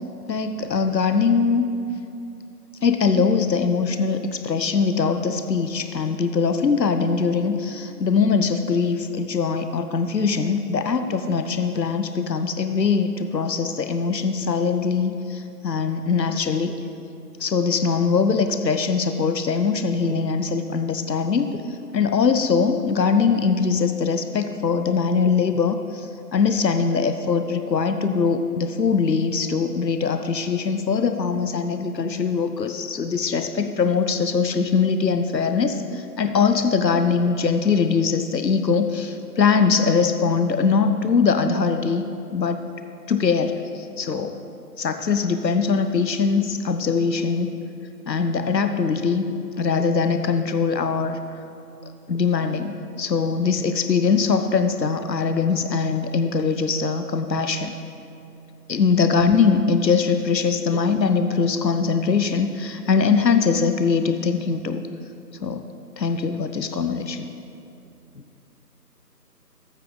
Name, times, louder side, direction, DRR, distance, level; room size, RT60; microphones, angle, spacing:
voice 1, 0.3-1.7 2.8-16.8 17.4-42.0 42.3-42.6 43.1-44.4 44.8-47.5 48.1-49.2 49.6-51.2 52.1-57.7 58.7-64.8 65.4-65.6 66.0-67.3, left 5 dB, 85° left, 8 dB, 0.7 m, -22 dB
13.0 x 8.1 x 3.8 m, 2.7 s
figure-of-eight pair, 165°, 49 cm